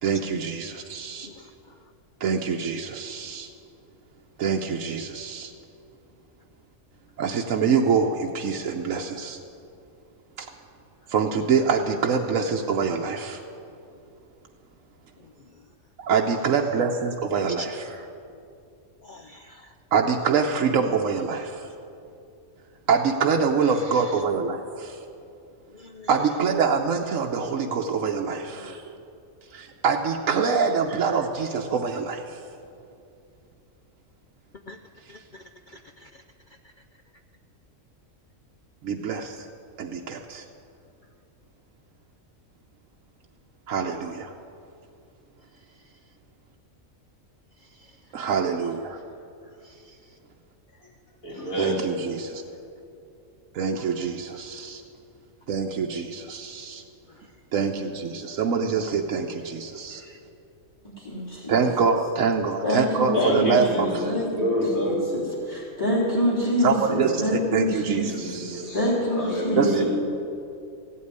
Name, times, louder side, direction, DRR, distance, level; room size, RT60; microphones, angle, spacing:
voice 1, 0.0-1.3 2.2-3.5 4.4-5.5 7.2-9.4 10.4-10.5 11.1-13.4 16.0-17.8 19.9-21.5 22.9-24.9 26.1-28.8 29.5-32.2 38.8-39.4 39.8-40.4 43.7-44.3 48.1-49.0 51.6-52.4 53.5-54.8 55.5-56.8 57.5-60.0 61.5-63.9 66.6-68.7 69.6-69.8, right 5 dB, 75° right, 1 dB, 1.1 m, -25 dB
voice 2, 17.6-18.1 19.0-19.6 23.7-24.1 25.7-26.1 28.5-28.7 34.7-34.8 35.1-36.1 49.6-49.7 60.0-60.2, equal, 55° left, 6 dB, 0.5 m, -45 dB
voice 3, 51.2-51.9 63.1-65.0 67.9-68.9 69.2-69.8, left 1 dB, 80° left, -6 dB, 4.6 m, -27 dB
voice 4, 61.0-61.6 62.6-64.4 65.1-68.0 68.7-69.8, equal, 15° left, -5 dB, 3.3 m, -26 dB
15.0 x 8.5 x 9.5 m, 2.6 s
omnidirectional pair, 1.4 m